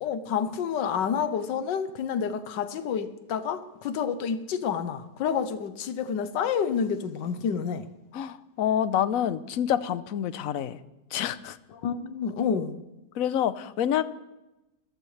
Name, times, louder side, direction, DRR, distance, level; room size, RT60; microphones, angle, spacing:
voice 1, 0.0-7.9 11.7-12.8, left 7 dB, 90° left, 11 dB, 1.5 m, -29 dB
voice 2, 8.1-10.8 11.1-11.6 13.1-14.0, left 10 dB, 60° left, 14 dB, 1.0 m, -27 dB
26.5 x 14.5 x 3.3 m, 0.97 s
omnidirectional pair, 1.9 m